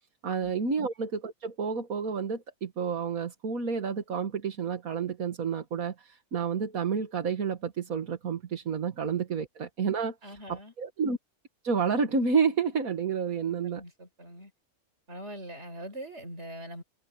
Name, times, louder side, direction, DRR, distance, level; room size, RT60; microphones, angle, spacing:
voice 1, 0.2-11.2 11.6-13.8, right 6 dB, 70° right, 2.1 m, -30 dB
voice 2, 10.2-10.7 13.6-14.5 15.1-16.8, right 1 dB, 50° right, 5.5 m, -42 dB
omnidirectional pair, 1.5 m